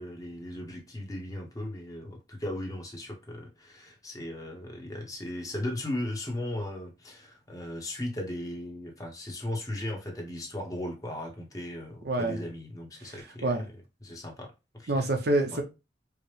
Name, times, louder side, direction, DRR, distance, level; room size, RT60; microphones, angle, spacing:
voice 1, 0.0-13.6 14.0-15.1 15.5-15.6, left 1 dB, 20° left, 0.9 m, -37 dB
voice 2, 12.0-12.4 13.0-13.1 13.4-13.6 14.9-15.6, right 2 dB, 55° right, 0.7 m, -26 dB
4.7 x 2.1 x 3.2 m
head